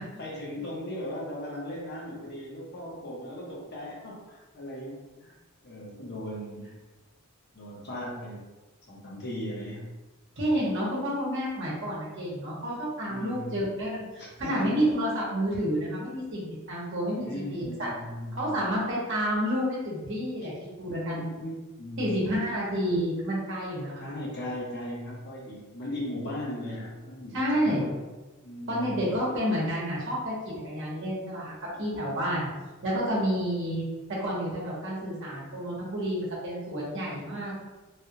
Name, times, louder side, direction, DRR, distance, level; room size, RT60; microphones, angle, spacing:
voice 1, 0.2-5.0 5.2-5.3 5.6-6.7 7.5-8.4 8.9-9.9 13.1-13.6 14.2-14.7 17.2-18.6 20.9-22.3 24.0-28.0 28.4-29.2 31.7-32.5 33.1-33.3, left 1 dB, 50° left, -3 dB, 0.9 m, -38 dB
voice 2, 10.4-17.9 18.3-20.5 20.8-21.3 22.0-24.1 27.3-27.8 28.7-31.5 31.8-32.5 32.8-33.9 34.2-37.6, equal, 60° right, -6 dB, 1.0 m, -29 dB
3.3 x 2.3 x 2.8 m, 1.2 s
head